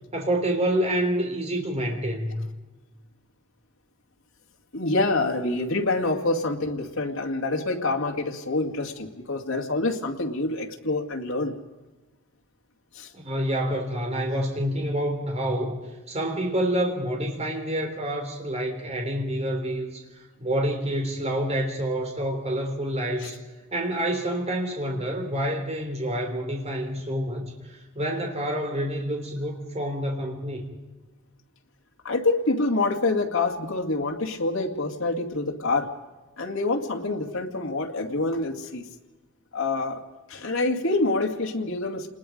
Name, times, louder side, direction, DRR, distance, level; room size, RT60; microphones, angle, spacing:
voice 1, 0.1-2.5 13.1-15.8 16.1-20.0 20.4-23.4 23.7-30.7, right 1 dB, 35° right, 2 dB, 3.4 m, -28 dB
voice 2, 4.7-11.5 12.9-13.1 23.2-23.3 32.0-35.9 36.4-38.9 39.5-40.0 40.3-42.1, left 2 dB, 80° left, 3 dB, 2.2 m, -26 dB
28.0 x 20.5 x 5.2 m, 1.2 s
head